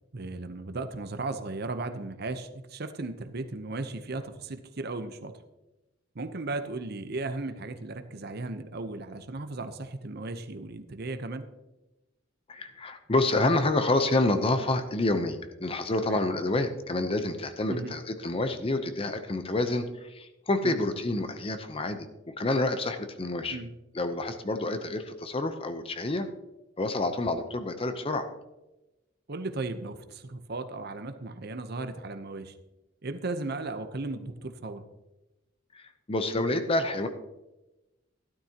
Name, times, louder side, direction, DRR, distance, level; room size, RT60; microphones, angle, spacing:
voice 1, 0.1-5.3 6.1-11.5 16.0-16.2 17.7-17.9 20.6-20.8 23.5-23.7 29.3-32.5 33.0-34.8, right 2 dB, 55° right, 9 dB, 0.8 m, -36 dB
voice 2, 12.5-23.6 23.9-26.3 26.8-28.3 35.7-37.1, left 2 dB, 30° left, 9 dB, 0.7 m, -28 dB
12.5 x 12.0 x 2.9 m, 1.0 s
head